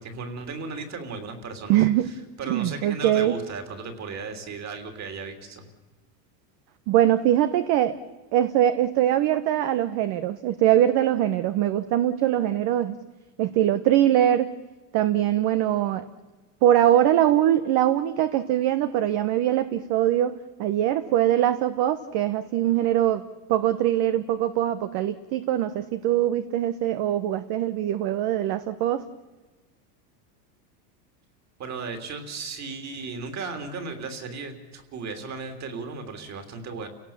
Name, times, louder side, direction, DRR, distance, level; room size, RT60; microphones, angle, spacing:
voice 1, 0.0-1.8 2.4-5.6 31.6-36.9, right 4 dB, 35° right, 6 dB, 3.3 m, -35 dB
voice 2, 1.7-2.1 2.5-3.4 6.9-7.9 8.3-13.0 13.4-14.5 14.9-16.0 16.6-23.2 23.5-29.0, right 12 dB, 50° right, 11 dB, 1.2 m, -22 dB
30.0 x 17.5 x 7.3 m, 1.2 s
supercardioid pair, 135°, 49 cm